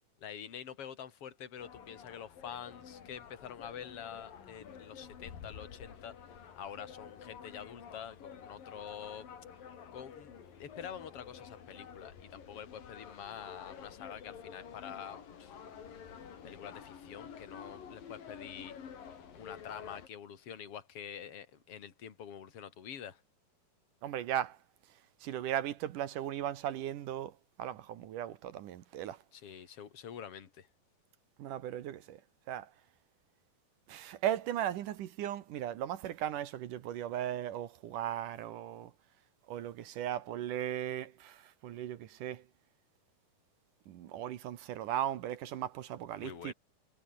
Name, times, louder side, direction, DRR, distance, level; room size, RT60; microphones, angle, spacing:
voice 1, 0.2-9.3 9.9-18.8 19.4-23.2 29.3-30.7 46.2-46.5, left 8 dB, 40° left, 3.1 m, -47 dB
sound 1, 1.6-20.1, left 7 dB, 60° left, 4.7 m, -50 dB
voice 2, 24.0-24.6 25.2-29.2 31.4-32.2 32.5-32.7 33.9-38.9 39.5-42.4 43.9-46.5, right 11 dB, 65° right, 2.5 m, -37 dB
omnidirectional pair, 4.5 m